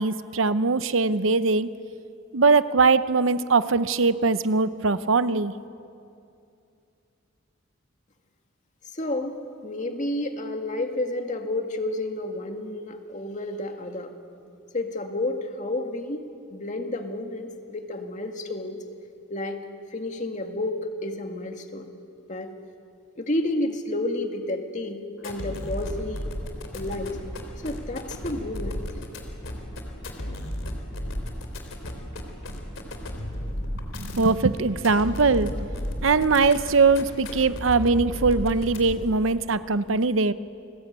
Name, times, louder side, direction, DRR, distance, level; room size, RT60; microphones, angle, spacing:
voice 1, 0.0-1.7 2.3-5.5 34.0-35.5 36.0-40.3, right 4 dB, 85° right, 13 dB, 0.8 m, -21 dB
voice 2, 8.9-9.4 9.6-14.1 14.7-18.8 19.3-19.6 19.9-21.9 22.3-22.5 23.2-26.3 26.7-27.2 27.6-28.8, left 1 dB, 40° left, 4 dB, 2.2 m, -30 dB
sound 1, 25.2-39.2, equal, 90° left, 3.4 m, -34 dB
29.5 x 20.5 x 9.0 m, 2.5 s
head